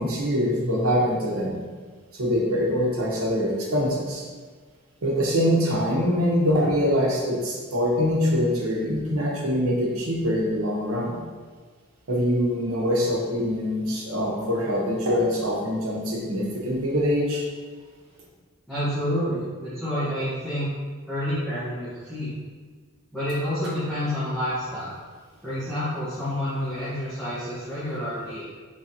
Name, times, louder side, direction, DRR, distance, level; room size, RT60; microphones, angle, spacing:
voice 1, 0.0-1.6 2.2-4.2 5.0-11.1 12.1-17.4, equal, 75° right, -3 dB, 0.9 m, -24 dB
voice 2, 18.7-20.7 21.1-22.4 23.1-24.9 25.4-28.4, equal, 5° left, -16 dB, 1.1 m, -28 dB
3.9 x 3.3 x 2.8 m, 1.5 s
head